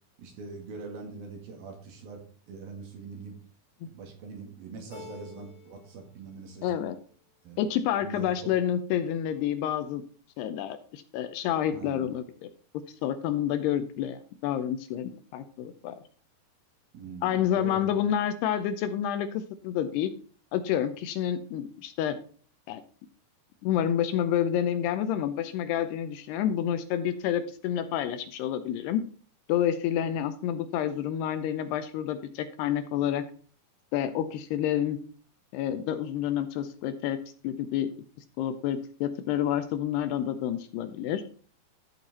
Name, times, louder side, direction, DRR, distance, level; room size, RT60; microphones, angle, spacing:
voice 1, 0.2-2.2 2.5-3.4 3.8-6.8 7.4-7.6 8.0-8.3 11.7-12.1 16.9-18.0, right 4 dB, 60° right, 2 dB, 3.5 m, -43 dB
Keyboard (musical), 4.9-6.0 6.3-7.1, left 5 dB, 20° left, 2.3 m, -49 dB
voice 2, 6.6-7.0 7.6-10.0 10.4-12.5 13.0-16.0 17.2-20.1 20.5-22.2 22.7-22.8 23.6-29.0 29.5-33.2 33.9-35.0 35.5-37.2 37.4-37.9 38.4-41.2, left 10 dB, 80° left, 10 dB, 2.6 m, -29 dB
13.5 x 5.7 x 4.2 m, 0.42 s
omnidirectional pair, 5.0 m